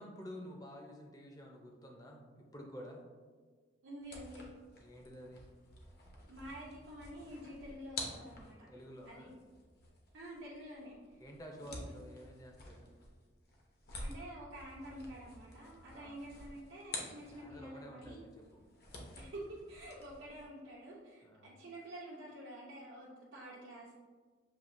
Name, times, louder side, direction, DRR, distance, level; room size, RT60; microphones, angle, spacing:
voice 1, 0.0-3.0 4.8-5.5 8.7-9.3 11.2-12.9 15.9-16.2 17.3-18.6 21.2-21.5, equal, 20° left, 1 dB, 0.5 m, -51 dB
voice 2, 3.8-4.4 6.3-8.7 9.0-9.4 10.1-11.2 11.7-11.8 14.0-18.2 19.1-23.9, right 1 dB, 80° right, -7 dB, 0.7 m, -49 dB
sound 1, 4.0-17.7 18.0-20.5, left 2 dB, 55° left, 0.8 m, -50 dB
6.8 x 2.7 x 2.5 m, 1.5 s
head